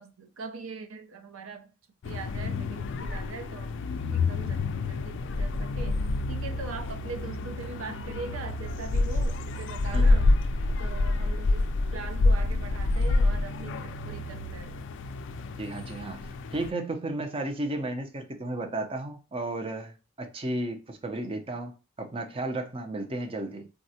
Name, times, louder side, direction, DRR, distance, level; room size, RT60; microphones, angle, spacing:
voice 1, 0.0-1.7 2.0-10.3 10.8-14.8, right 4 dB, 85° right, 0.5 m, -41 dB
sound 1, 2.0-16.7, left 2 dB, 60° left, 0.3 m, -28 dB
voice 2, 15.6-23.7, right 2 dB, 25° right, 0.5 m, -34 dB
3.5 x 2.1 x 2.7 m
head